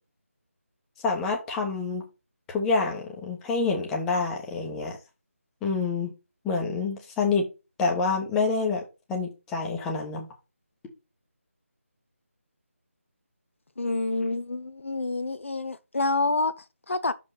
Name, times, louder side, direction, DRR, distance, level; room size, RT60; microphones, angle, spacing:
voice 1, 1.0-2.0 2.5-5.0 5.6-6.1 6.4-7.5 7.8-8.8 9.1-10.3, left 4 dB, 5° left, 1.2 m, -27 dB
voice 2, 13.8-17.1, left 2 dB, 60° left, 0.7 m, -28 dB
6.5 x 5.4 x 5.5 m
figure-of-eight pair, 160°, 8 cm